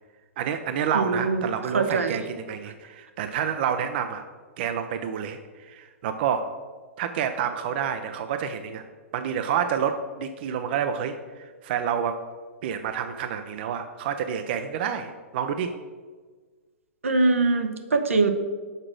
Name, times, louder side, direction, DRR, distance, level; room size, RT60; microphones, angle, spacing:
voice 1, 0.4-4.2 4.6-6.5 7.0-8.8 9.1-12.2 12.6-15.7, right 8 dB, 50° right, 8 dB, 0.5 m, -28 dB
voice 2, 0.9-2.2 17.0-18.3, right 3 dB, 75° right, 7 dB, 0.8 m, -23 dB
6.6 x 4.8 x 6.1 m, 1.4 s
figure-of-eight pair, 110°, 7 cm